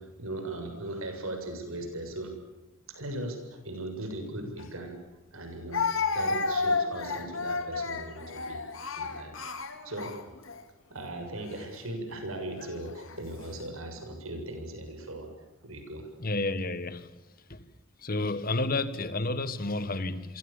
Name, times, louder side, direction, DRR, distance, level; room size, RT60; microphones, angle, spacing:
voice 1, 0.0-2.4 2.9-5.0 5.3-5.9 6.1-8.6 9.0-9.5 9.8-10.3 10.9-15.3 15.6-16.1, right 1 dB, 85° right, 7.2 m, -38 dB
Speech, 4.6-4.7 5.7-10.6 11.4-11.6 12.6-13.2, left 4 dB, 70° left, 2.5 m, -32 dB
voice 2, 16.2-17.1 17.5-17.7 18.0-20.4, left 2 dB, 45° left, 1.6 m, -31 dB
29.5 x 23.5 x 7.3 m
head